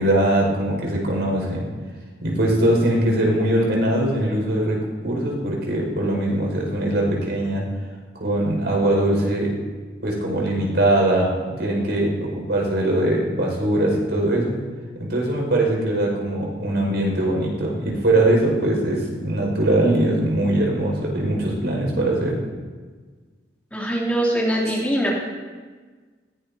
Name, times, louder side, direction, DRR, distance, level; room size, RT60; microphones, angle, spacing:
voice 1, 0.0-1.7 2.2-4.8 5.0-7.6 8.1-9.5 10.0-14.6 14.9-22.4, right 1 dB, 85° right, -1 dB, 5.5 m, -21 dB
voice 2, 23.7-25.2, right 1 dB, 10° left, -7 dB, 3.0 m, -22 dB
20.5 x 17.5 x 2.8 m, 1.4 s
head